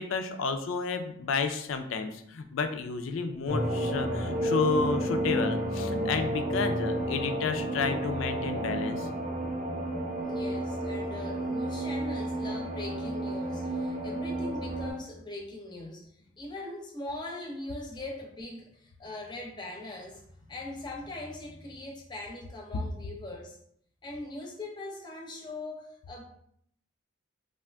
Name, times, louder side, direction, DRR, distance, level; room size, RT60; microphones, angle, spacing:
voice 1, 0.0-9.1, left 4 dB, 85° left, 7 dB, 0.4 m, -31 dB
sound 1, 3.5-14.9, right 1 dB, 35° right, 0.6 m, -31 dB
voice 2, 10.2-16.1 16.4-23.6 24.0-26.2, left 2 dB, 20° left, -1 dB, 0.5 m, -41 dB
2.5 x 2.4 x 3.3 m, 0.68 s
head